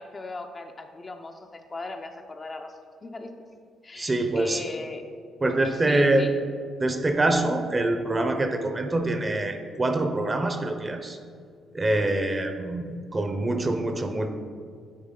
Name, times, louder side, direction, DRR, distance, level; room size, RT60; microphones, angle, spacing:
voice 1, 0.0-3.3 3.8-5.1 5.8-6.3, left 3 dB, 30° left, 4 dB, 0.5 m, -38 dB
voice 2, 4.0-4.6 5.4-6.2 6.8-11.2 11.7-14.3, right 2 dB, 25° right, 6 dB, 0.6 m, -25 dB
9.5 x 3.6 x 3.7 m, 2.1 s
cardioid pair, 90°, 0 cm